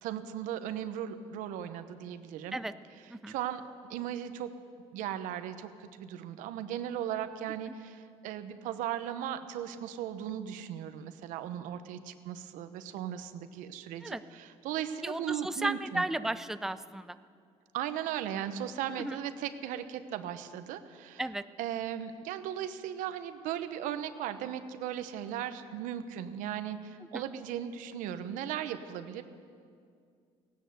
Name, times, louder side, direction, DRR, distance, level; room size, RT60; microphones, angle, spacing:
voice 1, 0.0-2.6 3.3-3.6 3.9-4.5 4.9-16.0 17.7-21.2 21.6-29.2, right 10 dB, 90° right, 10 dB, 0.9 m, -37 dB
voice 2, 15.0-17.2 19.0-19.2 21.2-21.4 27.1-27.2, right 1 dB, 5° right, 12 dB, 0.5 m, -34 dB
16.5 x 10.5 x 8.0 m, 2.2 s
cardioid pair, 85°, 13 cm